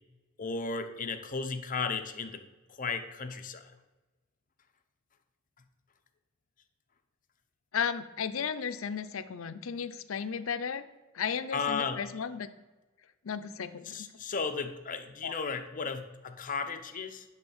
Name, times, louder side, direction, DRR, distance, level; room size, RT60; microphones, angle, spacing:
voice 1, 0.4-2.4 2.8-3.7 11.5-12.0 13.8-17.2, left 5 dB, 40° left, 7 dB, 0.8 m, -34 dB
voice 2, 7.7-10.8 11.1-12.5 13.2-14.1 15.2-15.3, left 7 dB, 85° left, 11 dB, 0.6 m, -34 dB
10.5 x 3.9 x 7.2 m, 1.2 s
head